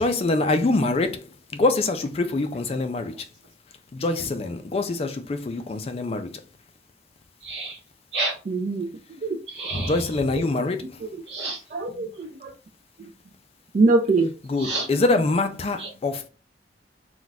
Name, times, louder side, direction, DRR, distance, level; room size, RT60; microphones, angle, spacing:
voice 1, 0.0-3.1 3.9-6.4 9.8-11.0 14.5-16.3, left 2 dB, 35° left, 0.3 m, -25 dB
voice 2, 7.4-7.8 8.1-8.4 9.5-10.2 11.3-11.6 14.6-14.9 15.8-15.9, right 2 dB, 75° right, 0.9 m, -29 dB
voice 3, 8.5-9.4 10.4-10.7 11.0-11.1 11.7-12.5 13.0-13.1 13.7-14.3, right 3 dB, 45° right, 0.3 m, -24 dB
2.4 x 2.2 x 3.9 m
head